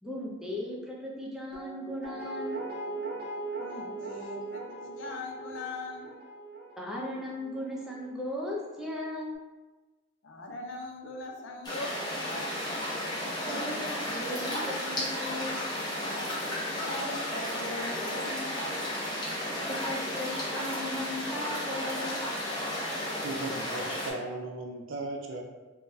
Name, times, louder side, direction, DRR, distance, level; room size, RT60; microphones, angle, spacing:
voice 1, 0.0-2.6 6.8-9.3 13.4-15.6 19.7-22.2, left 1 dB, 5° right, -4 dB, 0.5 m, -37 dB
Guitar, 1.5-8.5 8.9-9.0, right 2 dB, 45° right, 0.7 m, -40 dB
voice 2, 3.6-6.1 10.2-12.5 16.8-18.8, left 2 dB, 85° left, 2 dB, 0.5 m, -40 dB
sound 1, 11.6-24.1, left 1 dB, 20° left, 0.8 m, -33 dB
voice 3, 23.2-25.4, right 2 dB, 85° right, 1 dB, 0.4 m, -37 dB
3.8 x 2.1 x 2.6 m, 1.2 s
head